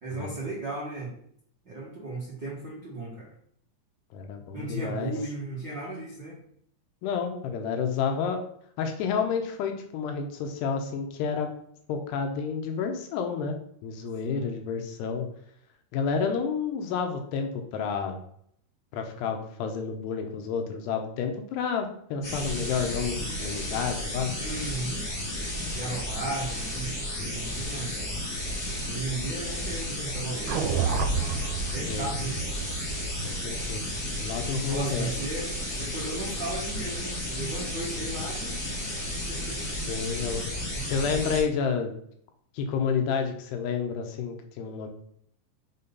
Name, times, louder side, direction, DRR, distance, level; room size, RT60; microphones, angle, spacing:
voice 1, 0.0-1.1 1.6-3.3 4.5-6.4 14.2-14.5 24.4-25.1 25.7-28.1 28.9-31.3 31.7-32.4 34.7-39.0 39.3-39.8 40.7-41.0, right 2 dB, 60° right, -6 dB, 1.1 m, -36 dB
voice 2, 4.1-5.1 7.0-8.4 8.8-11.5 11.9-13.6 13.8-15.3 15.9-18.2 18.9-24.3 31.7-32.1 33.2-33.9 34.2-35.1 39.9-40.5 40.8-41.9 42.5-44.9, left 6 dB, 80° left, 4 dB, 2.7 m, -30 dB
sound 1, 22.2-41.4, left 1 dB, 30° left, 1.7 m, -33 dB
sound 2, 30.5-34.8, right 6 dB, 85° right, 2.8 m, -31 dB
6.5 x 4.2 x 5.3 m, 0.66 s
omnidirectional pair, 5.1 m